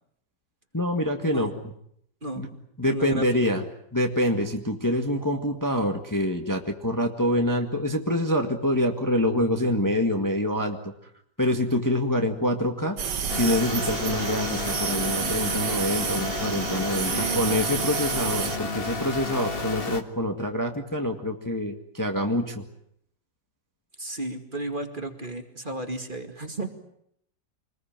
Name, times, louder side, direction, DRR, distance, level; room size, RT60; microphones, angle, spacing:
voice 1, 0.7-1.5 2.4-2.5 2.8-3.6 3.9-10.9 11.4-13.0 13.3-22.6, left 1 dB, 10° left, 4 dB, 1.7 m, -26 dB
voice 2, 2.8-3.2 17.0-17.4 24.0-26.7, right 2 dB, 25° right, 5 dB, 2.4 m, -33 dB
sound 1, 13.0-18.6, right 7 dB, 65° right, 1.9 m, -30 dB
sound 2, 13.3-20.0, left 4 dB, 35° left, 1.7 m, -32 dB
26.0 x 20.5 x 9.0 m, 0.71 s
omnidirectional pair, 2.0 m